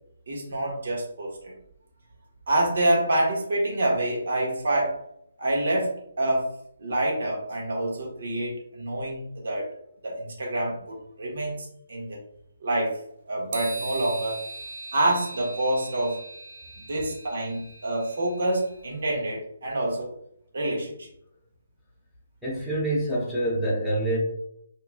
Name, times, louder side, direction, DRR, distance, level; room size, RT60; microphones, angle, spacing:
voice 1, 0.3-1.5 2.5-5.0 5.4-6.5 6.8-9.7 10.0-12.2 12.6-13.0 13.2-14.4 14.9-16.2 16.8-20.1 20.5-21.1, right 1 dB, 60° right, -3 dB, 1.4 m, -27 dB
sound 1, 13.5-18.8, right 3 dB, 45° right, 0.4 m, -40 dB
voice 2, 22.4-24.2, right 1 dB, ahead, -9 dB, 0.9 m, -26 dB
4.4 x 2.9 x 2.3 m, 0.73 s
hypercardioid pair, 165°, 0 cm